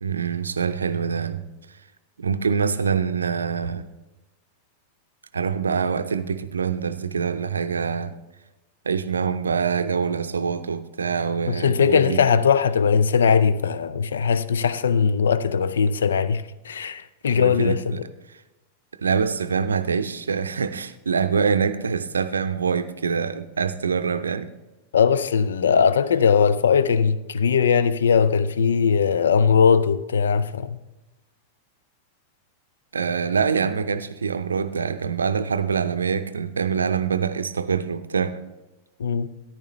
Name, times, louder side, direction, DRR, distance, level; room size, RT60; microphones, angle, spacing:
voice 1, 0.0-1.4 2.2-3.8 5.3-8.1 8.9-12.2 17.3-18.0 19.0-24.5 32.9-38.4, right 6 dB, 75° right, 0.5 m, -25 dB
voice 2, 11.5-18.1 24.9-30.8 39.0-39.3, left 6 dB, 65° left, 0.4 m, -20 dB
13.5 x 10.5 x 3.1 m
figure-of-eight pair, 90°, 0 cm